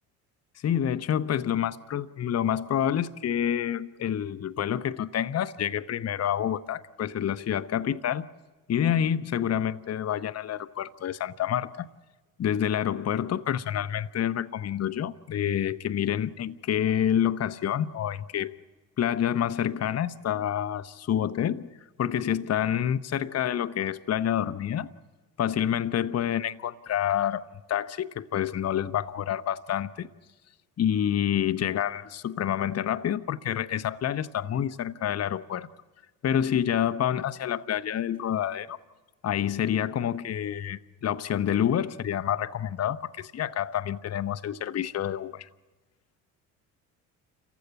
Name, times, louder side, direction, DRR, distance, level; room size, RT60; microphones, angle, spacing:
voice 1, 0.6-8.3 8.7-11.9 12.4-18.5 19.0-21.7 22.0-24.9 25.4-27.4 27.7-30.1 30.8-35.7 36.2-38.8 39.2-45.5, left 10 dB, 35° left, 0.9 m, -28 dB
28.5 x 15.5 x 9.9 m
hypercardioid pair, 60°, 44 cm